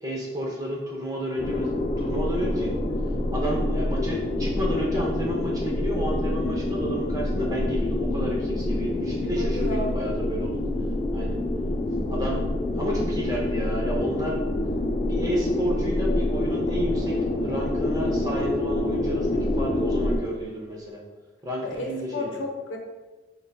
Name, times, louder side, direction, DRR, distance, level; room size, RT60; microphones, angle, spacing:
voice 1, 0.0-2.8 3.3-10.7 11.1-11.4 12.1-12.5 12.7-14.5 15.0-21.0 21.4-22.4, equal, 20° right, -2 dB, 0.7 m, -31 dB
sound 1, 1.4-20.2, left 1 dB, 30° left, 0.3 m, -27 dB
voice 2, 9.4-9.9 21.6-22.8, left 1 dB, 90° left, 1 dB, 0.7 m, -32 dB
3.9 x 3.4 x 2.3 m, 1.2 s
head